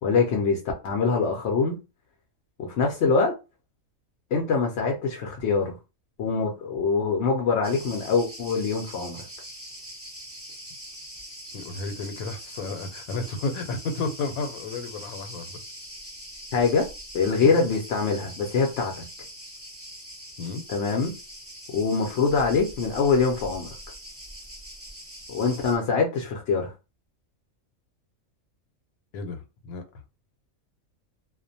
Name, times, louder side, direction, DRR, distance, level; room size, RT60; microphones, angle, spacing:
voice 1, 0.0-1.8 2.6-3.3 4.3-5.7 6.2-9.3 16.5-16.9 17.1-18.9 20.7-21.2 21.7-23.7 25.3-26.7, left 4 dB, 65° left, 0.7 m, -24 dB
Cricket, 7.6-25.8, equal, 20° right, 0.3 m, -42 dB
voice 2, 11.5-15.6 17.4-17.6 20.4-20.6 29.1-29.8, left 3 dB, 85° left, 1.0 m, -32 dB
2.4 x 2.1 x 2.6 m
omnidirectional pair, 1.4 m